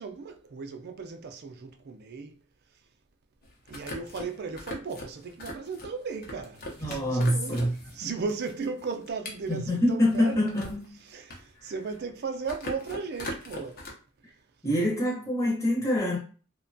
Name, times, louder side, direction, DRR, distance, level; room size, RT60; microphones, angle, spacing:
voice 1, 0.0-2.4 3.7-7.7 7.9-10.4 11.1-13.8, right 4 dB, 50° right, 0.4 m, -36 dB
sound 1, 3.4-8.0 8.3-10.9 11.2-12.1 12.4-13.9, left 1 dB, 45° left, 0.6 m, -41 dB
voice 2, 6.8-7.8 9.5-11.0 11.6-11.7 14.6-16.2, left 1 dB, 15° left, 0.8 m, -25 dB
2.8 x 2.1 x 2.6 m
head